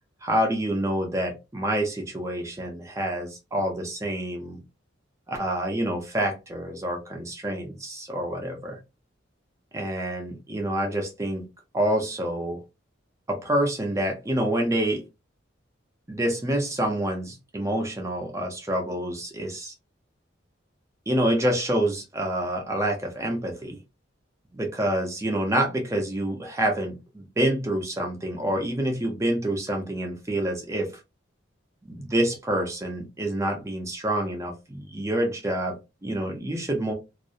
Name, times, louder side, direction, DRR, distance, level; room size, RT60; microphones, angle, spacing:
voice 1, 0.2-4.6 5.3-8.8 9.7-11.5 11.7-12.6 13.3-15.0 16.1-19.7 21.1-23.8 24.5-30.9 31.9-35.8 36.0-36.9, right 1 dB, 15° right, 0.5 m, -27 dB
2.4 x 2.0 x 2.6 m
head